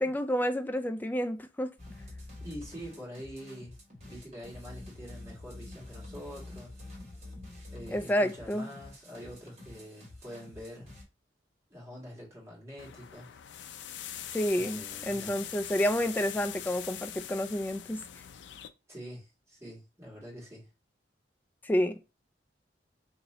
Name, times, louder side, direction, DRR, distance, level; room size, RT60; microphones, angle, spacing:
voice 1, 0.0-1.7 7.9-8.7 14.3-18.0 21.6-22.0, equal, 10° left, 0.4 m, -29 dB
sound 1, 1.8-11.0, left 2 dB, 35° right, 1.5 m, -47 dB
voice 2, 2.4-3.8 4.0-6.8 7.7-11.0 11.7-13.4 14.6-15.3 18.9-20.7, equal, 15° right, 1.8 m, -45 dB
sound 2, 12.8-18.7, left 10 dB, 85° left, 0.4 m, -42 dB
2.9 x 2.7 x 4.1 m
head